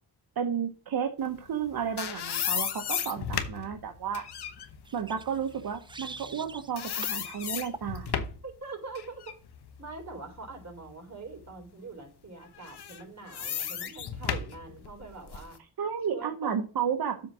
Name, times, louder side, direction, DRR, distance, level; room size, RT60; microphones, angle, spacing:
voice 1, 0.4-4.2 4.9-8.1 15.8-17.2, right 7 dB, 70° right, 5 dB, 1.1 m, -32 dB
sound 1, 1.5-6.4 6.8-8.5 8.9-10.9 11.4-11.5 12.5-15.6, left 8 dB, 80° left, 1.1 m, -35 dB
sound 2, 4.8-6.7 7.0-7.2 7.7-7.9, right 3 dB, 15° right, 0.3 m, -44 dB
voice 2, 8.4-9.3 9.8-15.6 16.1-16.6, right 3 dB, 45° right, 2 dB, 3.9 m, -43 dB
7.7 x 3.9 x 6.0 m, 0.37 s
cardioid pair, 70°, 39 cm